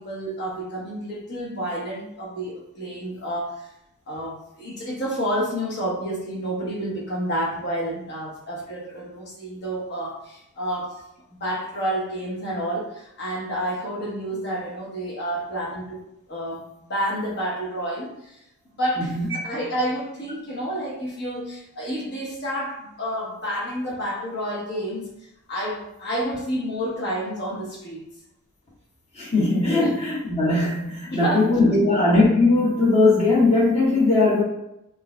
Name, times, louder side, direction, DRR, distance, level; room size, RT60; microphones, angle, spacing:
voice 1, 0.0-3.7 4.1-11.0 11.4-16.0 16.3-18.4 18.8-25.1 25.5-28.0 29.7-29.9 31.1-32.0, equal, 50° left, -3 dB, 1.1 m, -29 dB
voice 2, 19.0-19.4 29.1-34.4, left 2 dB, 30° left, -6 dB, 1.3 m, -19 dB
5.2 x 2.6 x 2.2 m, 0.83 s
head